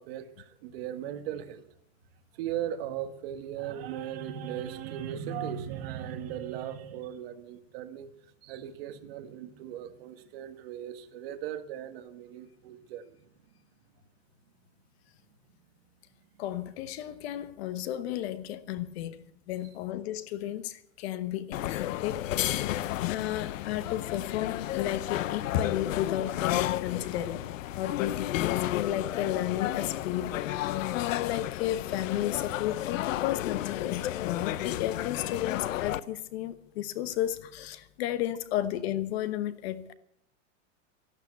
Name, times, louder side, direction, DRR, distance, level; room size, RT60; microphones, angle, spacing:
voice 1, 0.0-1.7 2.3-8.1 8.4-13.2 30.7-30.9, right 10 dB, 50° right, 1.6 m, -38 dB
voice 2, 16.4-22.2 23.1-27.4 27.7-39.9, left 12 dB, 50° left, 1.1 m, -33 dB
sound 1, 21.5-36.0, left 14 dB, 75° left, 0.8 m, -32 dB
13.5 x 12.0 x 8.2 m
supercardioid pair, 160°, 39 cm